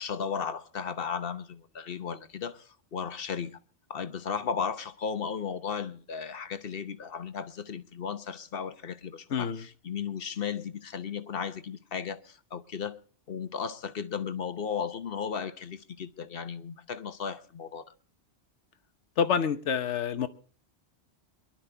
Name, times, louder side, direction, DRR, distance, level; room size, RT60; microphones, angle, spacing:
voice 1, 0.0-3.6 3.9-13.0 13.3-17.8, left 6 dB, 55° left, 1.1 m, -35 dB
voice 2, 9.3-9.6 19.2-20.3, left 7 dB, 90° left, 1.3 m, -27 dB
23.0 x 11.5 x 3.4 m
omnidirectional pair, 1.2 m